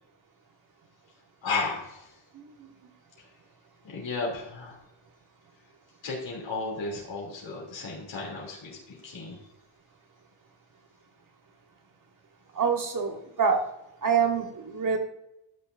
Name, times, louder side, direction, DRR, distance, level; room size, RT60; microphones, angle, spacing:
voice 1, 1.4-2.1 3.8-4.8 6.0-9.4, left 3 dB, 75° left, -2 dB, 3.2 m, -34 dB
voice 2, 12.6-13.6 14.0-15.0, right 6 dB, 45° right, 3 dB, 1.5 m, -25 dB
12.5 x 6.6 x 2.6 m, 0.86 s
wide cardioid pair, 150°, 46 cm